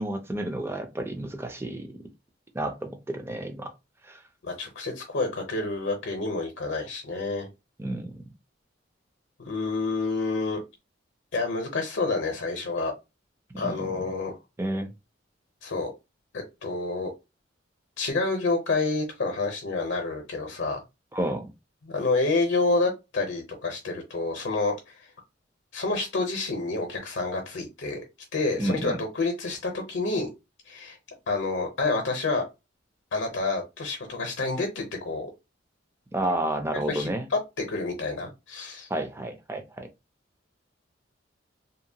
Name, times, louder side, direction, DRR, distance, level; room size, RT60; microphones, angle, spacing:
voice 1, 0.0-2.0 2.5-3.7 4.0-4.2 7.8-8.2 13.5-13.9 14.6-14.9 21.1-21.5 28.6-29.0 36.1-37.3 38.9-39.9, right 1 dB, 15° right, 0.4 m, -31 dB
voice 2, 4.4-7.5 9.4-10.6 11.3-12.9 13.6-14.3 15.6-15.9 16.6-17.1 18.0-20.8 21.9-24.7 25.7-28.0 28.3-30.3 30.7-31.0 31.3-32.4 33.1-35.3 36.9-38.9, left 3 dB, 70° left, 0.7 m, -28 dB
2.7 x 2.1 x 2.7 m
head